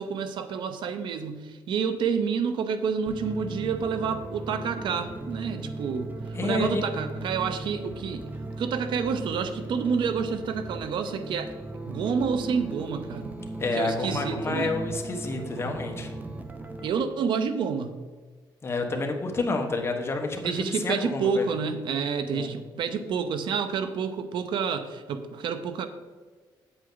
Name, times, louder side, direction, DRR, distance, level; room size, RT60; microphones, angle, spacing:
voice 1, 0.0-6.2 6.4-8.3 8.6-11.6 11.8-13.4 13.7-14.7 16.8-18.0 20.4-25.9, right 6 dB, 75° right, 9 dB, 0.7 m, -29 dB
sound 1, 3.1-16.9, right 2 dB, 20° right, 0.8 m, -37 dB
voice 2, 6.3-6.9 13.6-16.1 18.6-21.5 22.3-22.5, left 3 dB, 30° left, 3 dB, 1.3 m, -29 dB
8.7 x 8.0 x 3.9 m, 1.4 s
cardioid pair, 130°, 8 cm